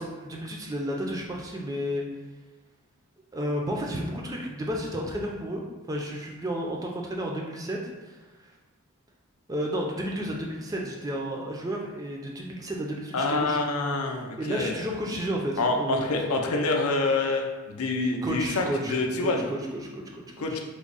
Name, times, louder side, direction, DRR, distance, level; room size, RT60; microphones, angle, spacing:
voice 1, 0.0-2.0 3.3-7.8 8.0-8.2 9.5-13.6 14.4-16.0 18.2-18.9 19.2-20.2 20.5-20.6, equal, 15° right, -1 dB, 0.3 m, -32 dB
voice 2, 13.1-14.7 15.6-19.4 20.4-20.6, left 2 dB, 80° left, 2 dB, 0.5 m, -26 dB
3.5 x 2.0 x 3.8 m, 1.2 s
head